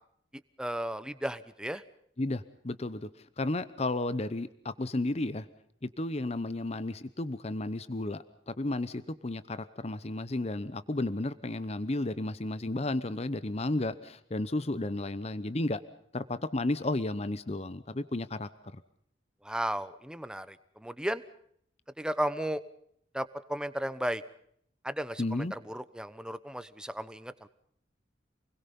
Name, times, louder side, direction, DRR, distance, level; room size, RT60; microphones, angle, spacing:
voice 1, 0.6-1.8 19.4-21.2 22.0-22.6 23.1-24.2 24.8-27.5, right 1 dB, 5° right, 13 dB, 0.9 m, -34 dB
voice 2, 2.2-3.1 3.4-5.5 5.8-15.8 16.1-18.5 25.2-25.5, left 2 dB, 35° left, 14 dB, 0.8 m, -33 dB
28.0 x 21.5 x 5.4 m, 0.68 s
head